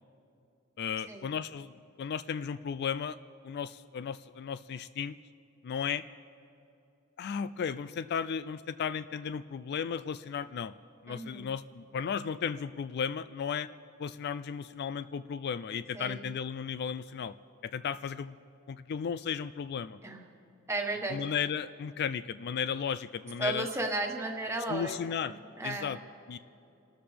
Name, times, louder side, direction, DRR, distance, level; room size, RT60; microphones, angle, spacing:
voice 1, 0.8-1.7 2.0-3.2 3.4-5.2 5.6-6.0 7.2-10.7 11.0-13.7 14.0-17.3 17.6-18.3 18.7-20.0 21.1-23.7 24.7-25.3 25.6-26.0 26.3-26.4, left 7 dB, 50° left, 14 dB, 0.3 m, -34 dB
voice 2, 11.1-11.5 15.9-16.3 20.0-20.3 20.7-21.2 23.4-26.0, right 2 dB, 15° right, 2 dB, 1.5 m, -35 dB
28.5 x 13.0 x 3.4 m, 2.8 s
head